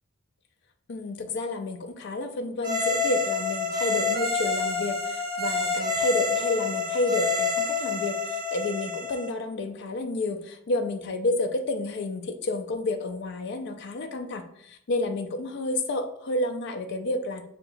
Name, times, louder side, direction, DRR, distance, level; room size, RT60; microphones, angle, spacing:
voice 1, 0.9-17.4, left 2 dB, 60° left, 7 dB, 0.4 m, -30 dB
sound 1, 2.6-9.3, left 4 dB, 55° right, 1.3 m, -27 dB
2.7 x 2.3 x 3.9 m, 0.71 s
head